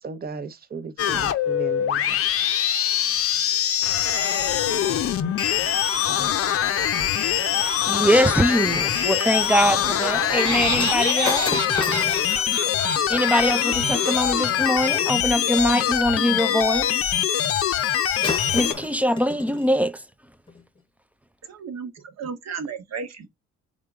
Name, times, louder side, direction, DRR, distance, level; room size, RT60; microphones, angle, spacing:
voice 1, 0.0-2.2, right 5 dB, 30° right, 0.7 m, -35 dB
sound 1, 1.0-18.7, left 10 dB, 50° left, 0.6 m, -23 dB
voice 2, 7.5-11.7 13.1-17.0 18.5-20.0, equal, 5° right, 0.3 m, -23 dB
Laughter, 9.7-14.9, right 3 dB, 75° right, 2.2 m, -32 dB
Shatter, 10.8-15.1 17.8-18.0 18.2-19.7 20.5-20.6, left 3 dB, 15° left, 0.9 m, -33 dB
voice 3, 21.4-23.3, right 5 dB, 60° right, 1.2 m, -34 dB
3.8 x 3.6 x 3.4 m
cardioid pair, 90°, 30 cm